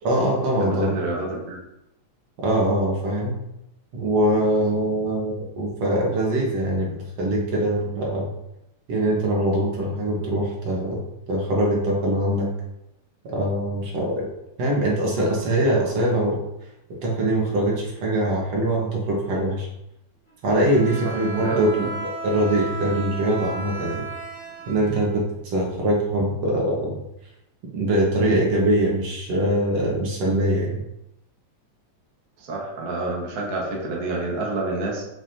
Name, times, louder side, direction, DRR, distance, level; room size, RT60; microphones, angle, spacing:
voice 1, 0.0-0.9 2.4-3.4 3.9-8.3 8.9-11.0 11.3-12.5 13.2-14.3 14.6-16.4 17.0-19.7 20.4-21.9 22.2-24.1 24.7-27.0 27.7-30.8, right 1 dB, 60° right, -2 dB, 2.5 m, -23 dB
voice 2, 0.6-1.6 21.0-21.9 32.4-35.0, right 2 dB, 40° right, -3 dB, 1.5 m, -28 dB
Bowed string instrument, 20.5-25.5, right 3 dB, 35° left, 2.1 m, -35 dB
7.1 x 7.0 x 2.9 m, 0.84 s
omnidirectional pair, 3.4 m